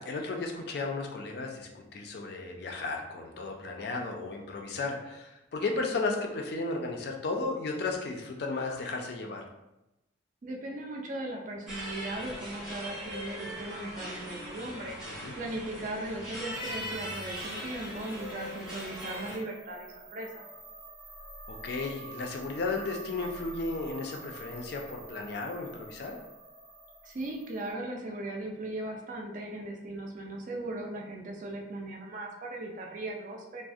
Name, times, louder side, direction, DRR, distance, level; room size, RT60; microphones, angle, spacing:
voice 1, 0.0-9.4 15.0-15.3 21.5-26.2, left 3 dB, 55° left, 2 dB, 0.3 m, -34 dB
voice 2, 10.4-15.0 15.4-20.4 27.0-33.6, right 1 dB, 40° right, 1 dB, 0.3 m, -38 dB
sound 1, 11.7-19.4, equal, 5° right, 0.6 m, -40 dB
sound 2, 16.5-27.7, right 2 dB, 85° right, 0.7 m, -48 dB
2.3 x 2.0 x 2.6 m, 0.94 s
head